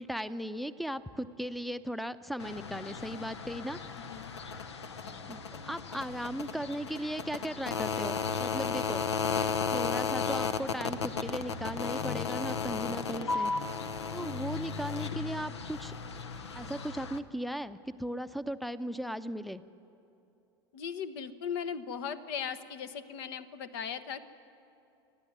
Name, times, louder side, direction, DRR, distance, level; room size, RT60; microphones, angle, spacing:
voice 1, 0.0-3.8 5.3-9.0 9.7-13.5 14.1-15.9 16.5-19.6, equal, ahead, 14 dB, 0.7 m, -37 dB
sound 1, 2.4-17.2, left 5 dB, 85° left, 0.9 m, -35 dB
voice 2, 4.0-4.3 20.7-24.2, left 7 dB, 65° left, 11 dB, 1.2 m, -38 dB
29.0 x 10.5 x 9.6 m, 2.8 s
hypercardioid pair, 90°, 14 cm